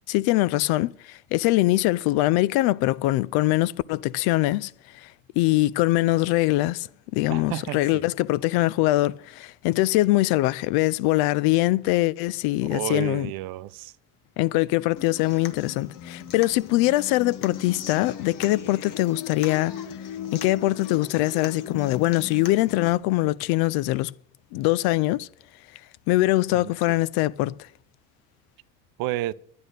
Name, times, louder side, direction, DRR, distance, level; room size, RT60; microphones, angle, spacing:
voice 1, 0.1-4.7 5.0-5.1 5.4-6.9 7.1-13.3 14.4-19.7 20.3-24.1 24.5-25.3 26.1-27.5, left 18 dB, 75° left, 0.5 m, -23 dB
voice 2, 7.3-8.0 12.6-13.9 29.0-29.3, right 16 dB, 70° right, 0.6 m, -31 dB
Human voice / Acoustic guitar, 15.0-22.9, left 8 dB, 60° left, 1.1 m, -38 dB
9.9 x 9.7 x 6.5 m
supercardioid pair, 85°, 37 cm